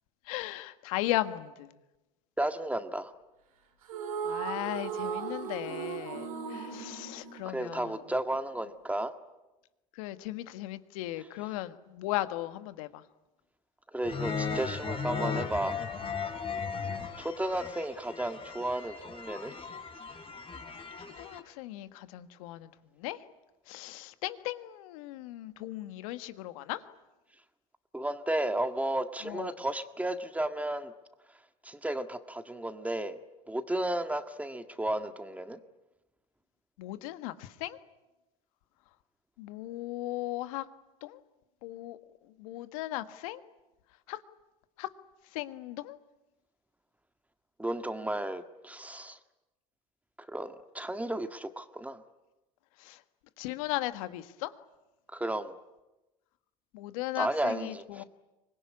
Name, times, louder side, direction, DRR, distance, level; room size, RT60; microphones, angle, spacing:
voice 1, 0.3-1.7 4.2-7.9 9.9-13.0 21.0-22.7 23.0-23.2 23.7-26.8 29.2-29.6 36.8-37.8 39.4-40.6 41.0-41.2 41.6-42.0 42.4-43.4 44.1-44.2 44.8-44.9 45.3-46.0 52.8-53.0 53.4-54.5 56.7-58.0, left 16 dB, 75° left, 11 dB, 1.5 m, -37 dB
voice 2, 2.4-3.1 7.4-9.1 13.9-15.8 17.2-19.5 27.9-30.9 31.6-33.2 33.5-35.6 47.6-49.2 50.3-52.0 55.1-55.5 57.2-58.0, right 1 dB, 10° right, 8 dB, 1.8 m, -33 dB
sound 1, 3.8-8.2, right 7 dB, 90° right, 3.7 m, -37 dB
sound 2, 14.0-21.4, left 5 dB, 30° left, 3.7 m, -37 dB
24.5 x 20.5 x 9.8 m, 1.0 s
hypercardioid pair, 85°, 18 cm